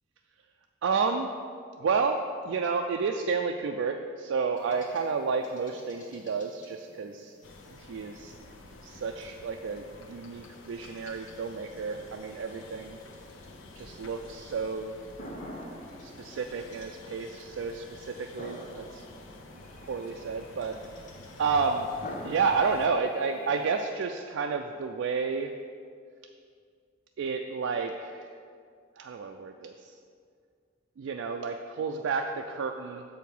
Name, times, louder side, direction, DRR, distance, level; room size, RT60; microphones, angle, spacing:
voice 1, 0.8-1.3 1.8-7.3 7.9-8.3 8.8-13.0 13.8-14.9 16.0-19.0 19.9-20.8 21.4-21.9 22.2-25.5 27.2-28.3 29.0-29.9 31.0-33.0, right 5 dB, 85° right, 3 dB, 0.4 m, -31 dB
sound 1, 4.5-23.8, equal, 40° left, 1.0 m, -49 dB
sound 2, 7.4-22.9, left 2 dB, 90° left, 0.7 m, -49 dB
7.0 x 4.7 x 5.4 m, 2.2 s
head